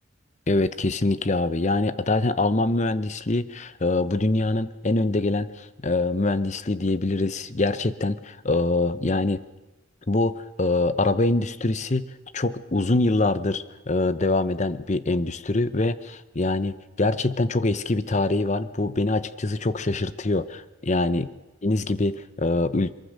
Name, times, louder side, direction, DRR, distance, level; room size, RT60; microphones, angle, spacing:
voice 1, 0.5-9.4 10.1-12.1 12.3-21.3 21.6-22.9, left 2 dB, 35° left, 14 dB, 0.8 m, -24 dB
23.0 x 23.0 x 6.5 m, 1.0 s
head